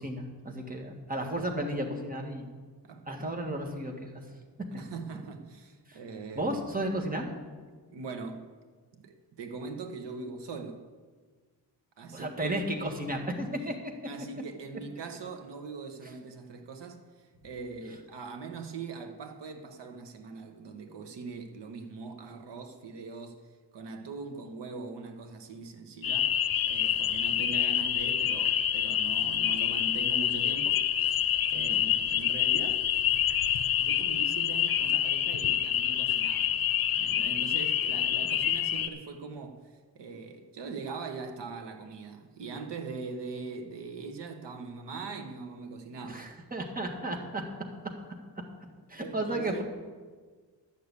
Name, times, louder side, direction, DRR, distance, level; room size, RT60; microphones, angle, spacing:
voice 1, 0.0-2.6 3.1-4.2 4.7-4.8 5.9-6.0 6.3-7.3 12.1-13.8 31.5-31.8 38.2-38.4 46.0-47.4 48.9-49.6, right 1 dB, 20° right, 1.6 m, -34 dB
voice 2, 4.7-6.7 7.9-8.5 8.9-10.8 12.0-12.5 14.0-23.4 23.7-31.2 31.5-32.9 33.8-36.6 37.0-46.3 49.0-49.6, right 4 dB, 80° right, 1.3 m, -41 dB
sound 1, 26.0-38.9, left 10 dB, 60° left, 0.8 m, -27 dB
11.5 x 6.8 x 8.3 m
wide cardioid pair, 130°, 42 cm